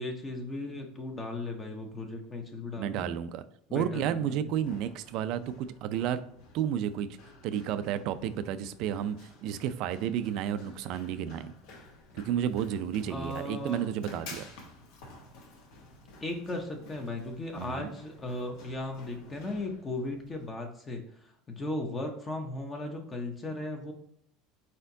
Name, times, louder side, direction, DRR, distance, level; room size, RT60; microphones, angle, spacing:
voice 1, 0.0-3.1 3.7-4.5 13.1-13.9 16.2-23.9, left 2 dB, 20° left, 3 dB, 0.7 m, -37 dB
voice 2, 2.8-3.4 3.7-6.2 6.5-7.1 7.4-11.5 12.1-14.5 17.6-17.9, right 9 dB, 50° right, 12 dB, 0.4 m, -32 dB
Run, 4.4-20.5, left 2 dB, 65° left, 1.2 m, -52 dB
4.4 x 4.3 x 2.7 m, 0.70 s
cardioid pair, 155°, 0 cm